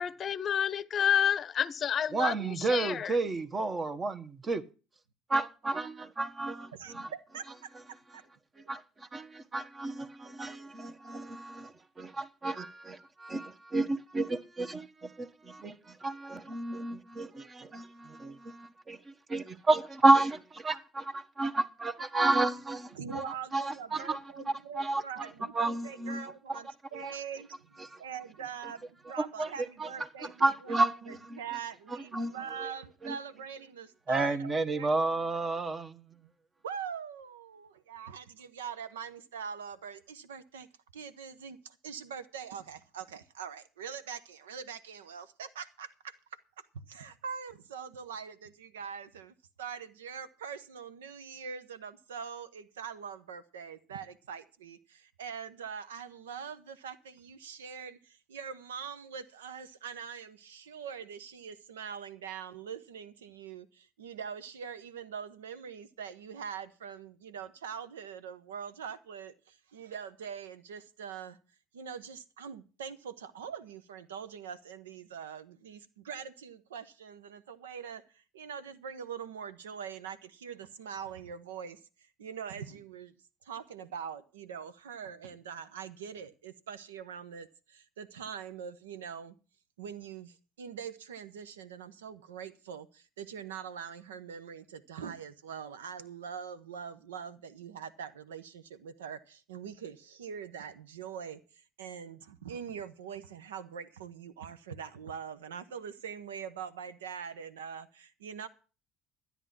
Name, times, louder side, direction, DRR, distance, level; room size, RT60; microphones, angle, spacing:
voice 1, 0.0-3.2, left 9 dB, 40° left, 0.7 m, -29 dB
voice 2, 2.1-4.6 5.3-7.1 9.5-23.2 23.5-24.2 24.8-25.0 25.5-26.6 26.9-27.1 27.8-28.0 29.4-29.5 29.8-29.9 30.2-31.4 32.1-32.3 32.6-32.7 33.0-33.1 34.1-36.0, right 2 dB, 30° right, 1.4 m, -31 dB
voice 3, 6.7-7.7 22.9-35.3 36.6-40.7 40.9-46.1 46.9-71.4 71.7-83.1 83.4-89.4 89.8-108.5, right 7 dB, 80° right, 0.9 m, -43 dB
13.0 x 9.7 x 6.0 m
hypercardioid pair, 60°, 0 cm